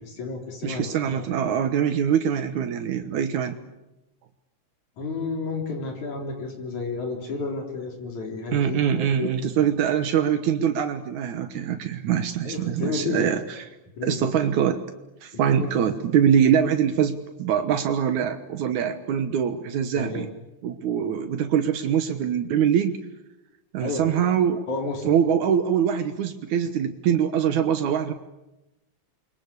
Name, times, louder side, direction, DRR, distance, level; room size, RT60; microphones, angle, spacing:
voice 1, 0.0-1.2 5.0-9.5 12.4-13.4 14.0-14.3 15.5-15.9 19.9-20.2 23.8-24.1 24.7-25.1, left 3 dB, 75° left, 2 dB, 5.1 m, -31 dB
voice 2, 0.6-3.6 8.5-13.6 14.0-14.8 15.2-20.3 20.6-23.0 23.7-24.6 25.0-28.1, right 8 dB, 80° right, 7 dB, 2.7 m, -23 dB
29.5 x 24.0 x 8.4 m, 0.95 s
omnidirectional pair, 3.4 m